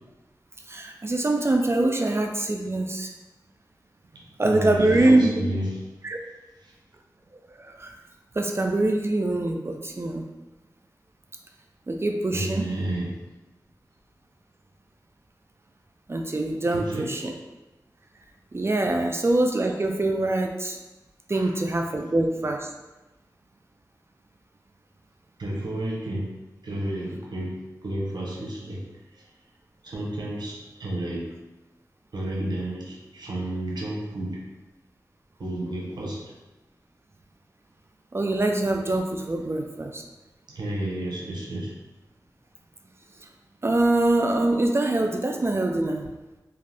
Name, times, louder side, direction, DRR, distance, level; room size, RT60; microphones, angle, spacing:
voice 1, 0.7-3.1 4.4-5.3 6.0-6.2 7.5-8.0 8.3-10.2 11.9-12.7 16.1-17.3 18.5-20.8 21.3-22.7 38.1-40.0 43.6-46.1, right 2 dB, 35° right, 3 dB, 0.3 m, -24 dB
voice 2, 4.1-5.8 6.6-6.7 12.3-13.2 16.7-17.1 21.3-21.5 25.4-26.3 26.6-29.3 29.8-31.3 32.1-34.4 35.4-36.3 40.5-41.8, right 1 dB, 80° right, -3 dB, 0.7 m, -31 dB
2.5 x 2.3 x 3.3 m, 1.1 s
cardioid pair, 40°, 7 cm